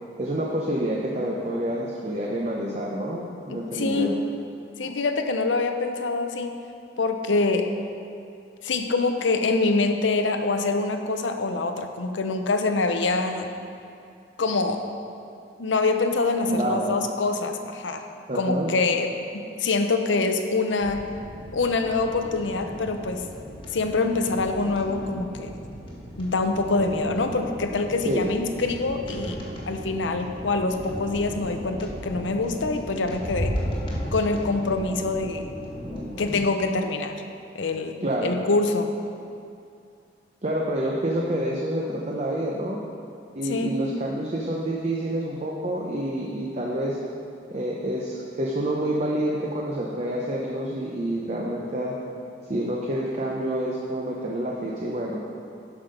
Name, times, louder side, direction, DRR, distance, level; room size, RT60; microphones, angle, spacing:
voice 1, 0.2-4.1 4.8-4.9 16.5-16.9 18.3-18.7 28.0-28.3 38.0-38.4 40.4-42.8 43.3-47.0 47.5-51.9 52.5-55.2, right 1 dB, 35° right, -2 dB, 0.7 m, -28 dB
voice 2, 3.5-4.2 4.8-6.5 7.0-7.7 8.6-13.5 14.4-14.8 15.6-18.0 18.3-19.1 19.6-21.0 21.5-23.2 23.7-25.5 26.2-29.4 29.7-33.5 34.1-35.5 36.2-37.2 37.5-38.9 43.4-43.8, left 3 dB, 80° left, 6 dB, 0.7 m, -25 dB
sound 1, 20.8-36.4, equal, 25° left, 1.5 m, -35 dB
12.0 x 5.7 x 5.1 m, 2.5 s
head